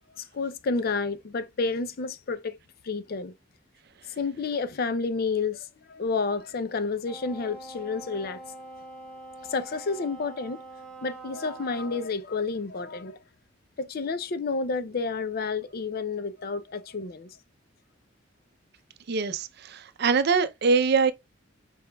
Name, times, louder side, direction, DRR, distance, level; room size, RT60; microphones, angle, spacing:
voice 1, 0.2-2.6 2.8-3.3 4.2-8.4 9.5-10.6 11.0-13.2 13.8-17.4, left 4 dB, 50° left, 0.5 m, -30 dB
Wind instrument woodwind instrument, 7.0-12.1, right 2 dB, 5° left, 1.6 m, -44 dB
voice 2, 19.1-21.1, right 5 dB, 55° right, 0.5 m, -23 dB
4.9 x 4.6 x 2.2 m
head